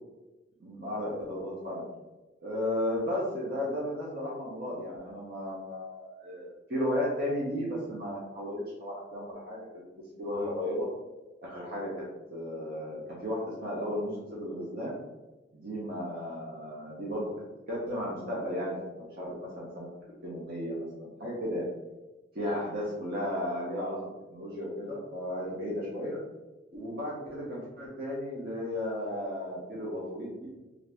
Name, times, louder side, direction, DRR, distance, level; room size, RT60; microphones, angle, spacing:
voice 1, 0.6-1.9 2.4-9.7 10.2-10.9 11.4-11.9 12.3-15.0 15.5-17.2 17.7-19.9 20.2-21.6 22.3-24.0 24.3-26.2 26.7-30.5, left 1 dB, 55° right, -6 dB, 0.8 m, -34 dB
2.7 x 2.5 x 3.3 m, 1.1 s
head